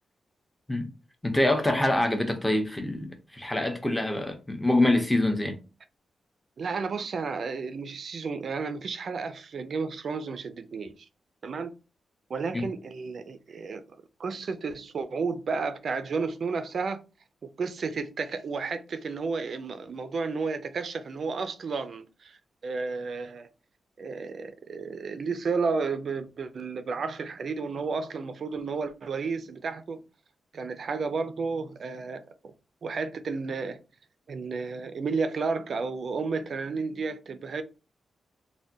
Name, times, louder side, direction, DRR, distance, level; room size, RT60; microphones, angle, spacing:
voice 1, 1.2-5.6 12.5-12.7, left 1 dB, 5° left, 0.6 m, -25 dB
voice 2, 6.6-10.9 11.4-11.7 12.3-13.8 14.2-17.0 17.4-23.5 24.0-30.0 30.5-32.5 32.8-33.8 34.3-37.6, right 4 dB, 55° right, 0.4 m, -32 dB
3.4 x 2.1 x 2.6 m
wide cardioid pair, 140°, 0 cm